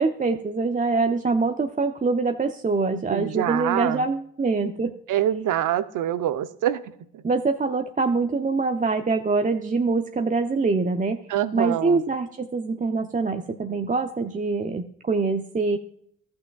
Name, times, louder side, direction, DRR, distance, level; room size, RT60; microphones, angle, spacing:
voice 1, 0.0-4.9 7.2-11.2 11.5-15.8, right 3 dB, 20° right, 6 dB, 0.7 m, -24 dB
voice 2, 3.1-4.0 5.1-6.8 7.1-7.2 11.3-12.0, right 11 dB, 60° right, 13 dB, 0.7 m, -25 dB
14.5 x 8.4 x 2.3 m, 0.67 s
hypercardioid pair, 50°, 35 cm